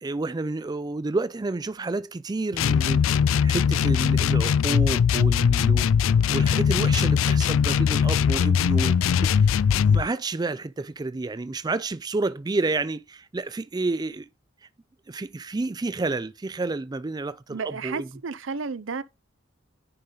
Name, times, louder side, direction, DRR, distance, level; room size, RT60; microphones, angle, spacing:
voice 1, 0.0-3.0 3.4-5.9 6.3-9.6 9.9-14.3 15.1-18.1, right 3 dB, 20° right, 0.4 m, -30 dB
sound 1, 2.5-10.1, left 7 dB, 85° left, 0.3 m, -21 dB
voice 2, 17.5-19.0, right 5 dB, 75° right, 0.7 m, -32 dB
9.8 x 5.1 x 3.9 m
head